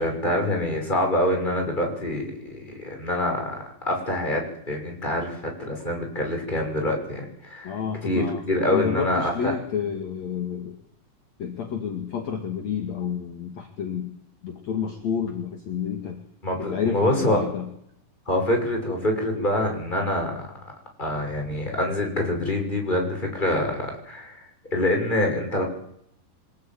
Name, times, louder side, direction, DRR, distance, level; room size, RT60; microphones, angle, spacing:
voice 1, 0.0-3.5 3.8-9.5 16.4-17.4 18.3-20.4 21.0-24.4 24.7-25.6, left 1 dB, 10° left, 2 dB, 6.3 m, -25 dB
voice 2, 7.6-10.8 11.4-14.1 14.4-16.2 16.6-17.7, left 7 dB, 50° left, 5 dB, 3.2 m, -30 dB
28.0 x 18.0 x 9.2 m, 0.74 s
omnidirectional pair, 4.1 m